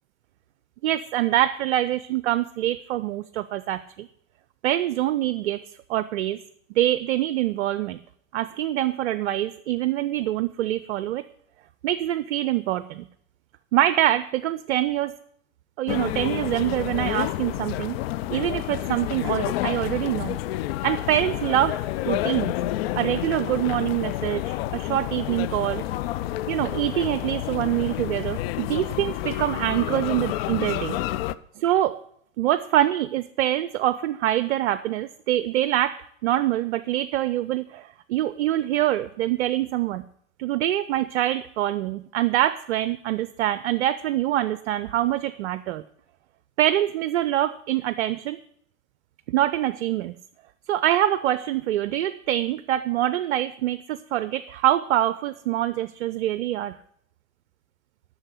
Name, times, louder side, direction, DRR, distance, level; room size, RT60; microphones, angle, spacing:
voice 1, 0.8-4.1 4.6-5.6 5.9-6.4 6.8-8.0 8.3-11.2 11.8-13.1 13.7-15.1 15.8-18.0 18.3-20.4 20.8-21.8 22.1-22.5 23.0-25.8 26.5-31.0 31.6-32.0 32.4-40.0 40.4-45.8 46.6-48.4 49.3-50.2 50.7-56.8, right 13 dB, 60° right, 14 dB, 0.6 m, -25 dB
sound 1, 15.9-31.3, left 14 dB, 50° left, 0.5 m, -29 dB
8.9 x 6.3 x 8.1 m, 0.67 s
hypercardioid pair, 95°, 40 cm